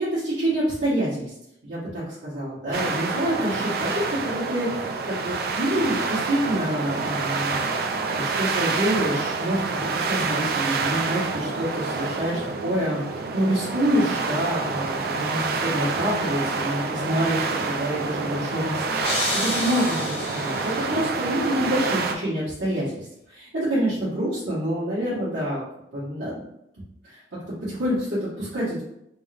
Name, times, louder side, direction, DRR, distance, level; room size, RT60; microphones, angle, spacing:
voice 1, 0.0-1.3 1.6-7.6 8.1-13.0 13.3-20.0 20.3-25.6 25.9-26.4 27.0-27.2 27.6-28.8, right 1 dB, 90° right, -12 dB, 1.4 m, -27 dB
sound 1, 2.7-22.1, right 4 dB, 55° right, 0.4 m, -27 dB
sound 2, 19.0-21.1, left 2 dB, 35° left, 0.7 m, -30 dB
3.6 x 2.5 x 3.3 m, 0.80 s
head